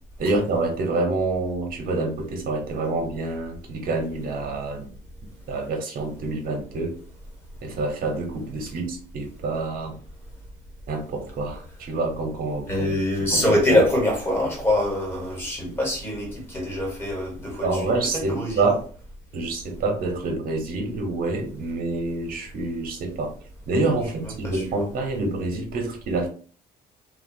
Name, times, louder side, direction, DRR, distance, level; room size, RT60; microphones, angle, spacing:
voice 1, 0.2-4.9 5.5-6.9 7.6-10.0 10.9-13.8 15.6-15.7 17.6-18.8 19.3-23.3 23.7-26.3, right 3 dB, 60° right, 3 dB, 1.0 m, -27 dB
voice 2, 12.7-17.7 18.1-18.6 24.4-24.6, left 1 dB, 15° left, -1 dB, 1.3 m, -24 dB
2.7 x 2.2 x 2.7 m, 0.41 s
cardioid pair, 110°, 17 cm